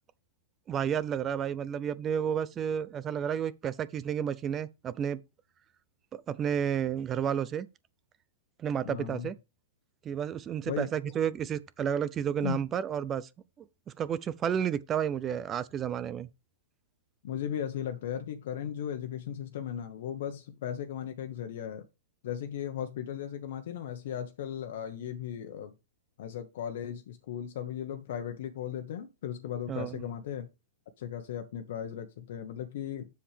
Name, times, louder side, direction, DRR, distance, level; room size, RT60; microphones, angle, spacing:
voice 1, 0.7-5.2 6.1-7.7 8.6-9.3 10.0-13.3 13.6-13.7 14.0-16.3 29.7-30.0, right 8 dB, 20° right, 0.4 m, -31 dB
voice 2, 8.8-9.3 10.7-10.9 12.4-12.6 17.2-21.9 22.2-25.7 26.2-30.5 31.0-33.1, left 9 dB, 60° left, 1.0 m, -36 dB
7.4 x 7.2 x 3.3 m
hypercardioid pair, 155°, 0 cm